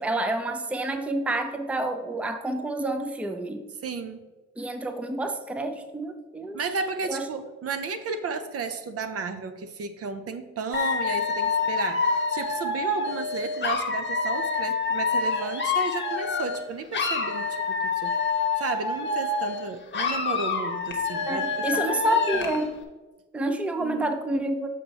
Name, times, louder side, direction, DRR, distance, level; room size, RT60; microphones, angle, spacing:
voice 1, 0.0-3.6 4.6-6.6 7.1-7.3 21.3-22.8 23.3-24.7, right 1 dB, 5° right, 7 dB, 0.5 m, -28 dB
voice 2, 3.8-4.3 6.5-18.2 18.6-22.5 23.8-24.2, right 4 dB, 50° right, 9 dB, 0.7 m, -33 dB
Dog / Alarm, 10.7-16.6 16.9-19.6 19.9-22.7, left 4 dB, 40° left, 1.1 m, -27 dB
6.1 x 5.8 x 4.1 m, 1.2 s
cardioid pair, 90°, 30 cm